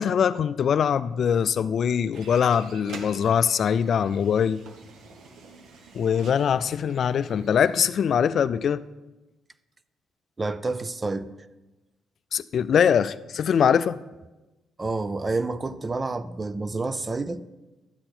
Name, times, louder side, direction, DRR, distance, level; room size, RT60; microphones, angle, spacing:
voice 1, 0.0-4.6 5.9-8.8 12.3-14.0, left 7 dB, 60° left, 0.3 m, -22 dB
sound 1, 2.1-7.9, right 4 dB, 75° right, 1.2 m, -47 dB
voice 2, 10.4-11.3 14.8-17.4, right 3 dB, 25° right, 0.5 m, -29 dB
12.0 x 7.8 x 4.4 m
cardioid pair, 90°, 0 cm